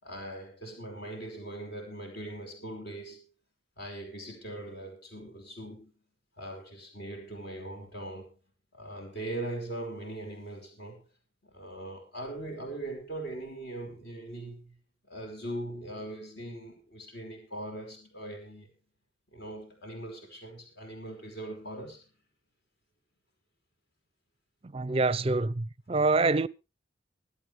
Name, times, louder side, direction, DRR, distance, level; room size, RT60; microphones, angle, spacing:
voice 1, 0.0-3.2 3.8-5.9 6.4-8.3 8.7-11.0 11.4-14.8 15.1-18.7 19.3-22.0, right 1 dB, 60° left, 5.0 m, -40 dB
voice 2, 24.7-26.5, right 3 dB, 30° right, 0.6 m, -26 dB
24.0 x 8.5 x 3.3 m
head